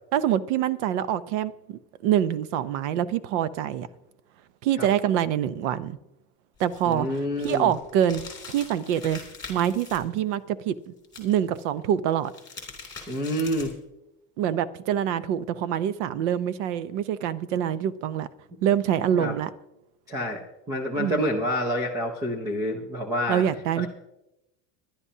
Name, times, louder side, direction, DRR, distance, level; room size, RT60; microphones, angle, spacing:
voice 1, 0.1-1.5 2.0-3.9 4.6-6.0 6.6-8.2 8.5-9.2 9.5-12.3 14.4-18.3 18.6-19.5 21.0-21.2 23.3-23.9, right 10 dB, 50° right, 0.7 m, -25 dB
sound 1, 6.6-10.0 11.0-11.6 12.1-13.9, left 4 dB, 10° left, 2.8 m, -43 dB
voice 2, 6.9-7.7 13.1-13.7 19.1-19.3 20.1-20.4 20.7-23.4 23.8-23.9, equal, 10° right, 0.4 m, -28 dB
21.0 x 11.5 x 2.8 m
supercardioid pair, 170°, 44 cm